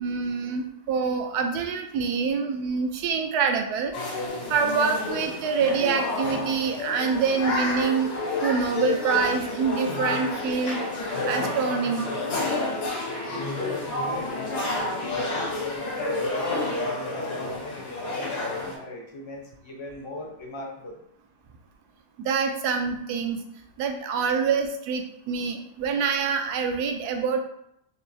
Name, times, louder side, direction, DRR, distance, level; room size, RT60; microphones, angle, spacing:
voice 1, 0.0-3.9 4.5-8.1 8.4-10.8 11.3-12.1 22.2-23.4 23.8-27.4, right 5 dB, 80° right, 4 dB, 1.1 m, -26 dB
sound 1, 3.9-18.7, left 2 dB, 85° left, 1.7 m, -30 dB
voice 2, 13.3-21.0, left 2 dB, 30° left, -1 dB, 0.5 m, -39 dB
4.6 x 3.2 x 2.7 m, 0.76 s
omnidirectional pair, 1.7 m